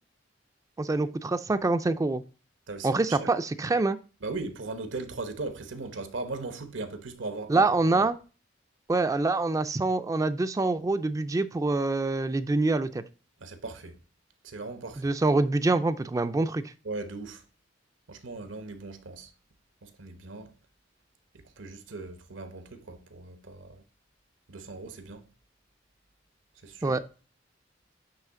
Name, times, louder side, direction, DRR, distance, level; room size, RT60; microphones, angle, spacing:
voice 1, 0.8-2.2 2.8-4.0 7.5-8.2 8.9-13.0 15.0-16.7 26.8-27.0, right 3 dB, 20° right, 0.3 m, -25 dB
voice 2, 2.7-3.3 4.2-7.7 7.9-8.1 13.4-14.0 14.4-15.1 16.8-17.4 18.1-19.3 19.8-20.5 21.6-23.8 24.5-25.3 26.6-27.0, right 3 dB, 85° right, 1.0 m, -38 dB
8.9 x 3.1 x 3.6 m
head